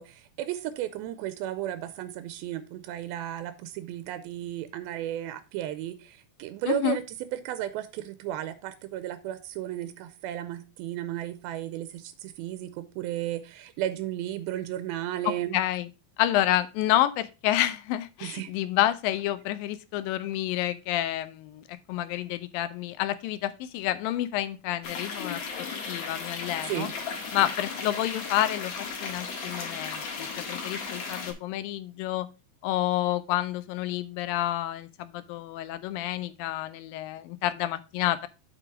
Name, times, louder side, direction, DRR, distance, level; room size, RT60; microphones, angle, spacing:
voice 1, 0.0-15.6 18.2-18.5 26.7-26.9, right 12 dB, 85° right, 2.5 m, -34 dB
voice 2, 6.7-7.0 15.3-15.9 16.2-26.9 27.3-32.3 32.6-38.3, left 13 dB, 80° left, 2.2 m, -29 dB
sound 1, 24.8-31.3, left 5 dB, 50° left, 2.3 m, -35 dB
7.5 x 5.2 x 4.6 m
omnidirectional pair, 4.3 m